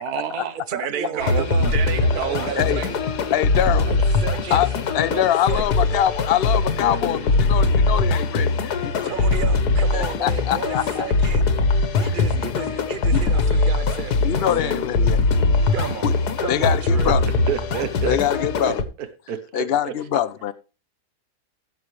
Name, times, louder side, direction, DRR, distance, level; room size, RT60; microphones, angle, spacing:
voice 1, 0.0-2.9 4.4-4.6 7.6-7.7 17.5-18.7 19.3-19.9, right 9 dB, 75° right, 1.5 m, -29 dB
voice 2, 0.5-1.7 2.1-3.0 3.7-4.6 5.1-5.6 8.9-11.4 11.9-14.7 15.7-17.1, right 7 dB, 50° right, 0.6 m, -33 dB
sound 1, 1.2-18.8, left 3 dB, 85° left, 1.7 m, -21 dB
voice 3, 2.2-2.8 3.3-3.9 4.5-9.2 9.9-11.1 12.0-12.4 13.1-13.4 14.2-15.2 16.0-16.1 16.5-17.3 18.0-18.8 19.5-20.5, left 10 dB, 50° left, 0.7 m, -24 dB
16.5 x 7.1 x 3.2 m
omnidirectional pair, 1.7 m